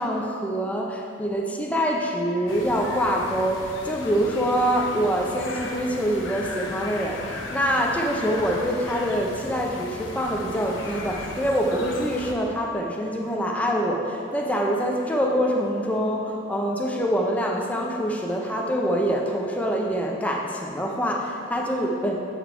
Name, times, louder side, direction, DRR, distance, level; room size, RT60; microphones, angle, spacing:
voice 1, 0.0-22.1, equal, 5° left, -1 dB, 0.6 m, -25 dB
sound 1, 2.5-12.3, left 2 dB, 75° left, 0.7 m, -37 dB
8.0 x 4.1 x 4.5 m, 2.5 s
head